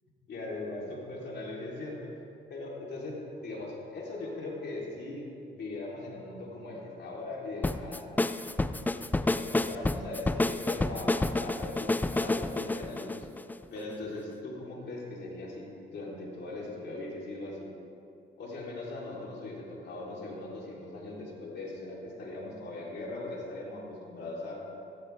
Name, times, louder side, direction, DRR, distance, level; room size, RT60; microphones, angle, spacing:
voice 1, 0.3-2.1 2.5-5.2 5.5-8.1 9.4-13.3 13.7-17.7 18.4-24.6, left 2 dB, 60° left, -3 dB, 3.5 m, -39 dB
sound 1, 7.6-13.9, left 2 dB, 10° left, 0.4 m, -29 dB
15.0 x 14.0 x 3.5 m, 2.6 s
cardioid pair, 90°, 20 cm